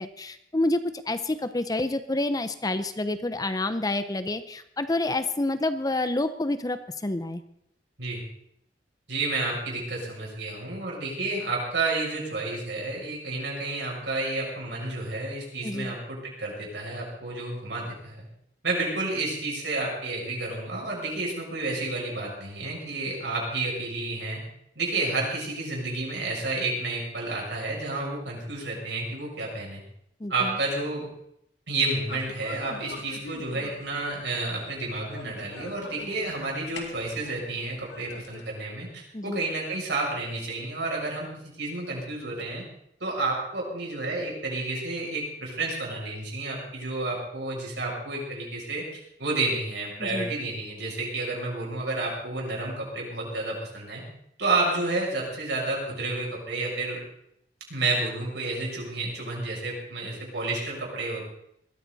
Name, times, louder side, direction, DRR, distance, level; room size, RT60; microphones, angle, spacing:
voice 1, 0.0-7.4 15.6-15.9 30.2-30.5 39.1-39.4 50.0-50.3, left 2 dB, 20° left, 11 dB, 0.6 m, -28 dB
voice 2, 9.1-18.2 18.6-24.4 24.7-29.8 30.3-31.1 31.7-42.6 43.0-54.0 54.4-57.0 57.7-61.2, right 2 dB, 85° right, -2 dB, 6.9 m, -30 dB
sound 1, 32.1-38.5, left 2 dB, 75° left, 2.4 m, -44 dB
20.5 x 14.0 x 4.1 m, 0.76 s
head